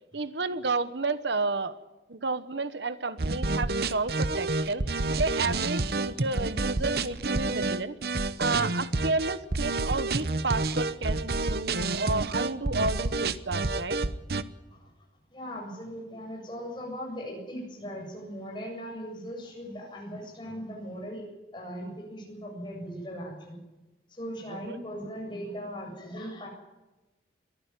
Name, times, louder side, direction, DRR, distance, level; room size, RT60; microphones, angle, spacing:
voice 1, 0.1-1.8 2.1-14.0 24.5-24.8, right 3 dB, 75° right, 13 dB, 1.2 m, -31 dB
sound 1, 3.2-14.4, right 3 dB, 55° right, 0.9 m, -29 dB
voice 2, 15.3-21.2 21.5-23.6 24.1-26.5, equal, 25° left, 1 dB, 7.8 m, -39 dB
23.0 x 14.5 x 9.3 m, 1.1 s
head